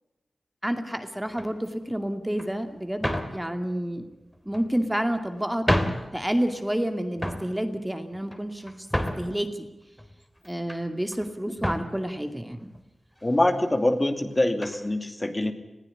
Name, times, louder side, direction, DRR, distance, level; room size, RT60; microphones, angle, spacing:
voice 1, 0.6-4.1 4.5-5.7 6.1-9.7 10.4-12.6, equal, 10° right, 7 dB, 2.4 m, -29 dB
sound 1, 1.3-1.7 2.4-2.5 3.0-3.4 4.3-4.9 5.4-5.5 5.7-6.1 6.5-6.9 7.2-7.5 8.1-9.4 10.0-10.8 11.1-11.3 11.6-11.9 12.7-12.8 13.2-13.3 14.6-14.8, equal, 10° left, 3.2 m, -29 dB
voice 2, 13.2-15.5, left 1 dB, 25° left, 7 dB, 2.6 m, -24 dB
21.0 x 15.0 x 9.9 m, 1.0 s
cardioid pair, 50°, 0 cm